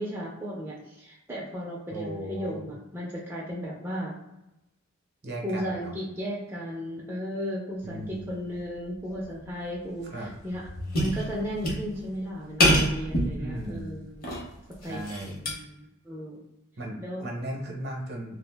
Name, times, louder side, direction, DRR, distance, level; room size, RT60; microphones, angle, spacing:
voice 1, 0.0-4.1 5.4-10.6 10.9-14.4 14.8-16.4 17.0-17.2, equal, 10° right, -5 dB, 0.4 m, -35 dB
voice 2, 1.9-2.6 5.2-5.9 7.8-8.3 10.0-10.3 13.4-13.9 14.9-15.4 16.8-18.4, right 1 dB, 50° right, -1 dB, 0.7 m, -36 dB
sound 1, 9.1-9.3 9.7-9.8 10.2-12.1 12.6-13.9 14.2-15.5, equal, 45° left, 0.7 m, -26 dB
2.4 x 2.0 x 3.3 m, 0.91 s
head